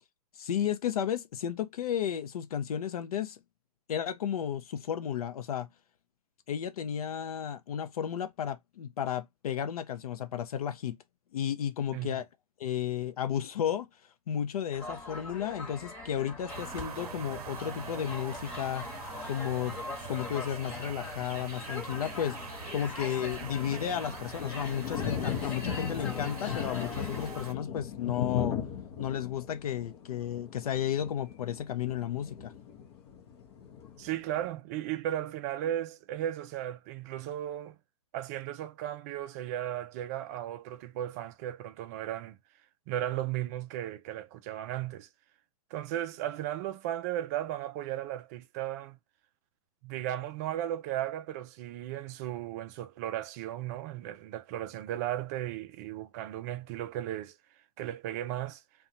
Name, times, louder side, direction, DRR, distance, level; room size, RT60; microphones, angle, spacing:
voice 1, 0.4-3.4 3.9-5.7 6.5-11.0 11.3-12.3 12.6-13.9 14.3-18.9 19.3-19.8 20.1-22.4 22.7-28.6 29.0-32.5, left 9 dB, 70° left, 0.6 m, -33 dB
sound 1, 14.7-27.5, left 3 dB, 25° left, 1.1 m, -42 dB
sound 2, 16.5-27.5, right 7 dB, 75° right, 0.6 m, -44 dB
sound 3, 22.8-34.4, left 8 dB, 45° left, 0.8 m, -38 dB
voice 2, 34.0-37.8 38.1-42.4 42.9-45.1 45.7-49.0 49.8-57.4 57.8-58.6, right 12 dB, 25° right, 0.3 m, -35 dB
2.6 x 2.3 x 2.8 m
hypercardioid pair, 150°, 19 cm